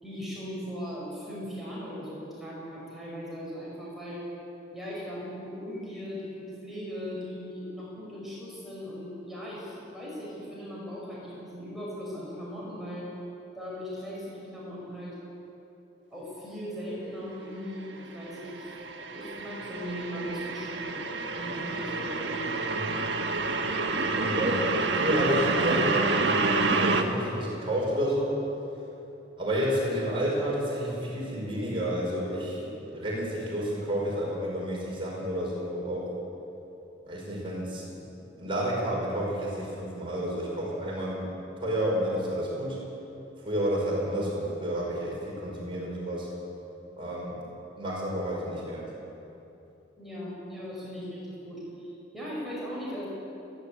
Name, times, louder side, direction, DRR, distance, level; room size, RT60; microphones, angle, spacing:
voice 1, 0.0-4.3 4.7-13.2 13.5-15.2 16.1-18.8 19.1-20.9 21.4-22.4 50.0-53.1, equal, ahead, -7 dB, 5.5 m, -38 dB
sound 1, 17.9-27.0, right 3 dB, 65° right, 1.5 m, -28 dB
voice 2, 24.2-28.4 29.4-36.1 37.1-38.1 38.4-41.2 41.6-42.8 43.4-46.3 47.0-47.4 47.8-48.9, equal, 30° right, -4 dB, 5.5 m, -30 dB
29.0 x 11.5 x 8.6 m, 3.0 s
head